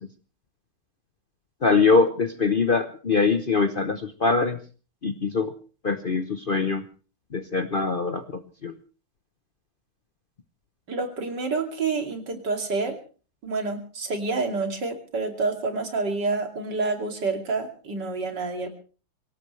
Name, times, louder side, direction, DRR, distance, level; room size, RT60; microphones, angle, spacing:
voice 1, 1.6-4.6 5.0-5.5 5.8-6.8 7.3-8.2 8.6-8.7, left 4 dB, 40° left, 9 dB, 0.9 m, -23 dB
voice 2, 10.9-13.0 13.4-18.7, right 3 dB, 90° right, 5 dB, 3.3 m, -28 dB
24.0 x 17.5 x 3.2 m, 0.37 s
omnidirectional pair, 1.8 m